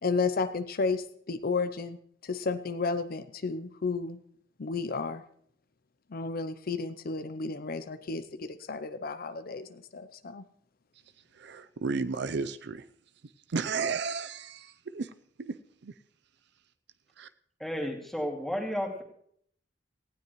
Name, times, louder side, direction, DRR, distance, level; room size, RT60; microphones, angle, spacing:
voice 1, 0.0-2.0 2.2-4.2 4.6-5.2 6.1-10.4, left 4 dB, 50° left, 11 dB, 0.6 m, -32 dB
voice 2, 11.3-12.9 13.2-15.1 15.4-15.9 17.2-17.3, right 4 dB, 65° right, 12 dB, 0.5 m, -34 dB
voice 3, 17.6-19.0, equal, ahead, 0 dB, 2.3 m, -32 dB
18.5 x 15.5 x 3.1 m, 0.66 s
head